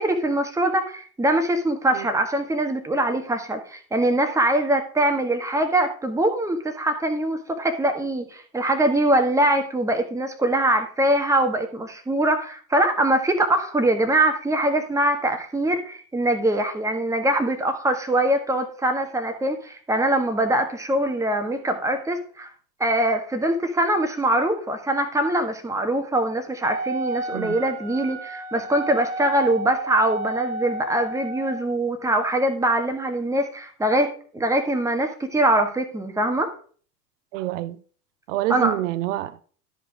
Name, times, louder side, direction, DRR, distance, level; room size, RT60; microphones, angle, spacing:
voice 1, 0.0-22.5 22.8-36.5 38.5-38.7, right 1 dB, 5° right, 1.5 m, -23 dB
Wind instrument woodwind instrument, 26.6-31.6, right 2 dB, 35° right, 1.0 m, -32 dB
voice 2, 37.3-37.8 38.3-39.4, right 15 dB, 50° right, 0.7 m, -27 dB
12.5 x 5.2 x 4.7 m
figure-of-eight pair, 80°, 49 cm